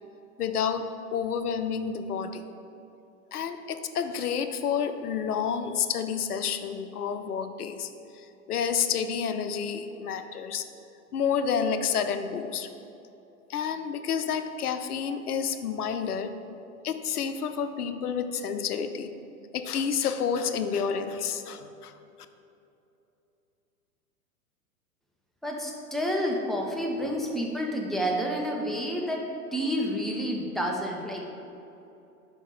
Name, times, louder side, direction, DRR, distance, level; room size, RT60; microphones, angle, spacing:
voice 1, 0.4-2.4 3.3-10.6 11.1-12.7 13.5-16.4 16.8-19.1 19.5-22.0, left 7 dB, 80° left, 9 dB, 0.7 m, -29 dB
voice 2, 25.4-31.3, equal, ahead, -1 dB, 0.7 m, -29 dB
5.3 x 5.2 x 6.5 m, 2.8 s
hypercardioid pair, 105°, 44 cm